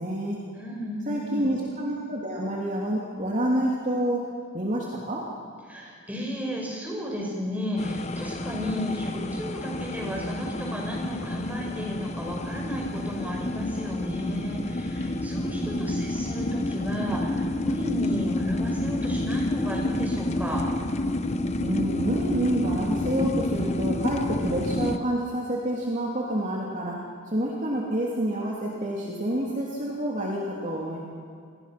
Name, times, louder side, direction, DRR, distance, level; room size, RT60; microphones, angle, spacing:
voice 1, 0.0-0.4 1.1-4.3 4.5-5.2 15.5-16.0 21.6-27.0 27.3-31.0, right 1 dB, 35° right, -3 dB, 3.0 m, -28 dB
voice 2, 0.5-1.5 5.7-20.6, left 1 dB, 10° right, -2 dB, 5.6 m, -33 dB
sound 1, 7.8-25.0, left 1 dB, 30° left, 0.9 m, -29 dB
28.0 x 20.5 x 6.1 m, 2.2 s
head